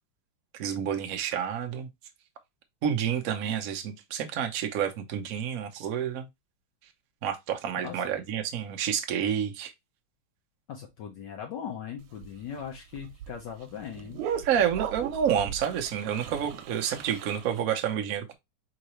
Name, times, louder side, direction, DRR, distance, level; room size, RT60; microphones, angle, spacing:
voice 1, 0.6-1.9 2.8-6.3 7.2-9.7 14.4-18.3, right 8 dB, 70° right, 0.8 m, -29 dB
voice 2, 7.8-8.1 10.7-14.3, left 8 dB, 65° left, 1.2 m, -39 dB
sound 1, 12.0-17.6, right 8 dB, 85° right, 1.6 m, -39 dB
3.9 x 3.8 x 3.0 m
omnidirectional pair, 2.4 m